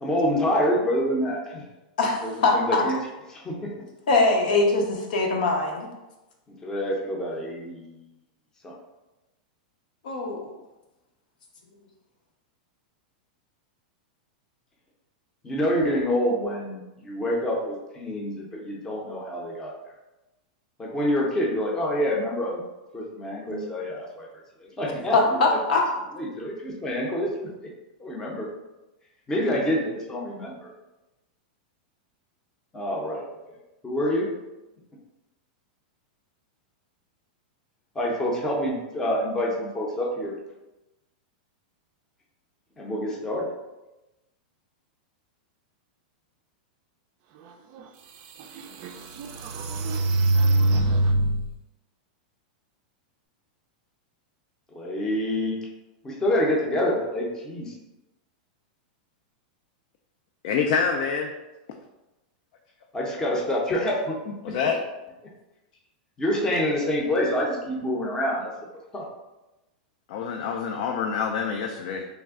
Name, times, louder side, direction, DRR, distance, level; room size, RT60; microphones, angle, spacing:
voice 1, 0.0-1.6 2.2-3.0 3.3-3.7 6.6-8.0 8.6-8.7 15.4-19.7 20.8-22.6 22.9-24.3 24.6-25.6 26.2-27.5 28.0-28.5 29.3-30.7 32.7-33.3 33.8-34.3 38.0-40.4 42.8-43.5 54.7-55.6 56.0-57.7 62.9-64.2 66.2-68.5 68.9-69.0, equal, 15° left, -2 dB, 0.6 m, -27 dB
voice 2, 2.0-2.9 4.1-5.9 10.0-10.5 23.5-23.7 25.1-25.8, left 3 dB, 80° left, 0 dB, 0.8 m, -22 dB
sound 1, 47.7-47.8 48.4-51.5, right 1 dB, 40° right, 0.3 m, -23 dB
voice 3, 60.4-61.3 64.4-64.8 70.1-72.1, left 6 dB, 60° left, 3 dB, 0.3 m, -26 dB
3.3 x 2.1 x 3.5 m, 1.0 s
supercardioid pair, 150°, 5 cm